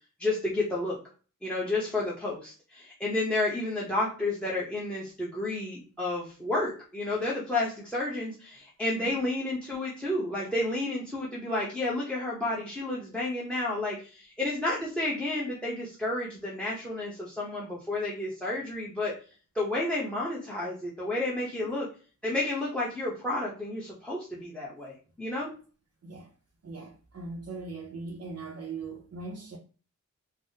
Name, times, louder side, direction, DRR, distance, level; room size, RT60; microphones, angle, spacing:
voice 1, 0.2-1.0 1.4-19.1 19.5-21.9 22.2-25.5, left 2 dB, 5° left, 0.8 m, -31 dB
voice 2, 26.0-26.3 26.6-29.6, right 3 dB, 45° right, 0.6 m, -40 dB
3.3 x 2.0 x 2.7 m
wide cardioid pair, 55°, 34 cm